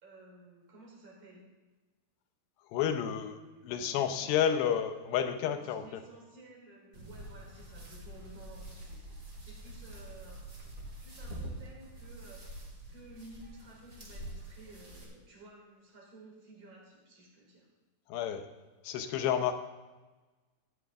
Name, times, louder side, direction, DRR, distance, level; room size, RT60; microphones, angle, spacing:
voice 1, 0.0-1.4 2.8-4.8 5.4-10.4 11.0-12.4 12.9-17.7, right 2 dB, 35° right, -2 dB, 4.6 m, -54 dB
voice 2, 2.7-3.4 3.6-6.0 18.1-18.5 18.8-19.5, left 9 dB, 90° left, 8 dB, 3.1 m, -30 dB
sound 1, 6.9-15.0, right 1 dB, 20° right, 3.4 m, -46 dB
16.5 x 12.5 x 3.7 m, 1.2 s
omnidirectional pair, 4.7 m